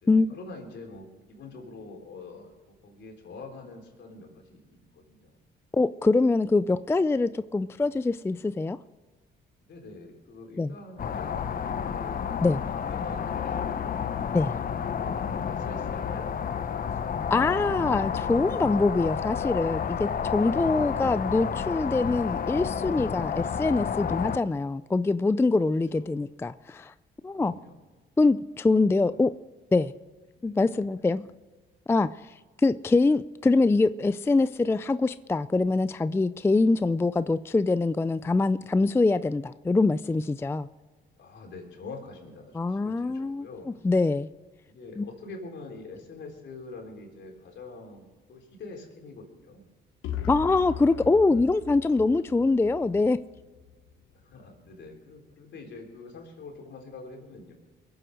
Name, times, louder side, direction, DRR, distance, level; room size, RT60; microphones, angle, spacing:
voice 1, 0.0-2.5 2.8-5.4 9.7-12.3 12.8-14.1 14.9-15.2 15.5-16.6 20.7-21.0 25.9-26.2 27.4-27.8 29.0-29.2 30.3-30.6 41.1-43.7 44.7-49.6 50.9-51.2 54.2-57.5, left 3 dB, 65° left, 3.7 m, -45 dB
voice 2, 5.7-8.8 10.6-10.7 12.4-12.6 14.3-14.5 17.3-26.9 27.2-27.5 28.2-29.3 29.7-29.9 30.4-31.2 31.9-32.3 32.6-40.7 42.6-44.3 45.0-45.1 50.3-53.2, left 3 dB, 10° left, 0.3 m, -24 dB
sound 1, 11.0-24.4, left 7 dB, 45° left, 0.8 m, -30 dB
sound 2, 50.0-53.9, left 9 dB, 90° left, 1.0 m, -39 dB
22.0 x 7.8 x 6.3 m
cardioid pair, 90°, 20 cm